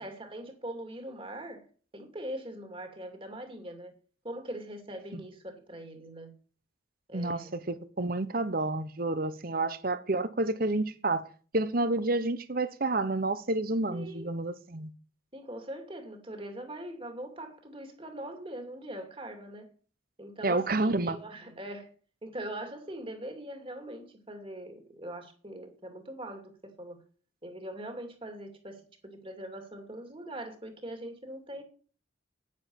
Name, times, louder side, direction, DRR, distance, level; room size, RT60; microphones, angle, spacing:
voice 1, 0.0-1.7 1.9-3.9 4.2-6.3 7.1-7.5 9.5-9.7 13.9-14.3 15.3-19.7 20.2-21.9 22.2-27.0 27.4-31.6, right 1 dB, 25° right, 2.6 m, -42 dB
voice 2, 7.1-11.3 11.5-14.9 20.4-21.2, right 2 dB, 45° right, 1.1 m, -29 dB
9.8 x 9.6 x 7.2 m
head